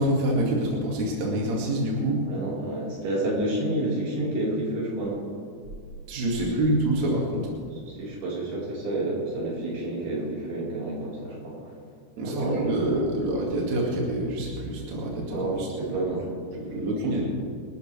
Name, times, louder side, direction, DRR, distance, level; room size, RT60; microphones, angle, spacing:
voice 1, 0.0-2.2 6.1-7.5 12.2-15.7 16.5-17.3, right 1 dB, 50° right, -3 dB, 3.2 m, -26 dB
voice 2, 2.3-5.2 6.5-6.7 7.9-11.6 12.2-13.0 15.3-16.3 17.0-17.3, right 2 dB, 65° right, -6 dB, 6.3 m, -29 dB
26.5 x 13.5 x 3.4 m, 2.2 s
omnidirectional pair, 4.7 m